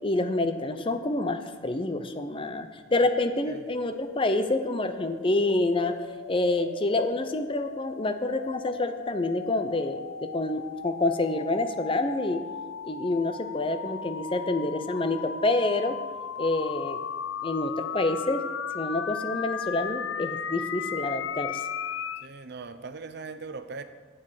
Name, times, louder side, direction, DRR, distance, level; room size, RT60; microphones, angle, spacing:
voice 1, 0.0-5.9 6.3-12.4 12.8-16.0 16.4-17.0 17.4-18.4 18.7-21.6, left 2 dB, 25° left, 0.6 m, -27 dB
sound 1, 3.4-22.3, left 7 dB, 70° left, 0.4 m, -37 dB
voice 2, 22.2-23.8, right 4 dB, 55° right, 0.6 m, -39 dB
9.8 x 7.7 x 6.6 m
head